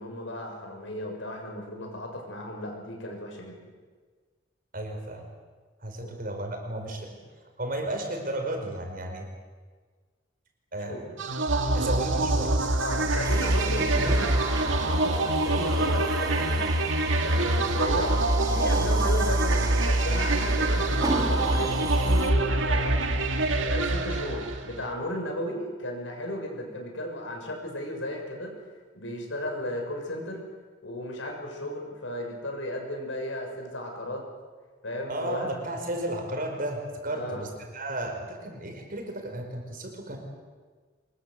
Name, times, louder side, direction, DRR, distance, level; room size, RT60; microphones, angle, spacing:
voice 1, 0.0-3.6 6.0-6.1 10.9-11.0 11.8-11.9 12.8-16.8 17.2-18.1 18.5-23.1 23.6-28.5 28.9-30.4 30.8-34.2 34.8-35.6 37.1-37.5, left 1 dB, 75° left, 2 dB, 6.5 m, -35 dB
voice 2, 4.7-5.2 5.8-7.2 7.6-9.3 10.7-11.1 11.7-12.6 35.1-40.2, right 1 dB, 45° right, 3 dB, 5.1 m, -33 dB
sound 1, 11.2-24.8, right 2 dB, 80° right, 2.2 m, -25 dB
sound 2, 13.2-22.3, right 2 dB, 20° right, 1.7 m, -36 dB
25.0 x 22.0 x 7.9 m, 1.5 s
head